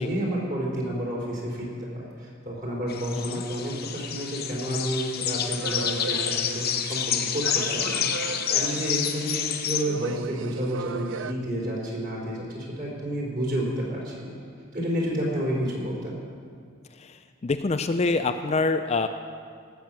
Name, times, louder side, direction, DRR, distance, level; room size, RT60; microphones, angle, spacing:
voice 1, 0.0-14.4 14.7-16.2, equal, 45° right, -3 dB, 3.8 m, -30 dB
sound 1, 2.9-9.8, left 9 dB, 50° left, 0.8 m, -29 dB
sound 2, 5.6-7.1 7.4-9.5 9.8-11.3, right 5 dB, 65° right, 0.4 m, -36 dB
voice 2, 16.9-19.1, left 3 dB, 30° left, 8 dB, 0.4 m, -26 dB
18.0 x 6.9 x 7.5 m, 2.1 s
head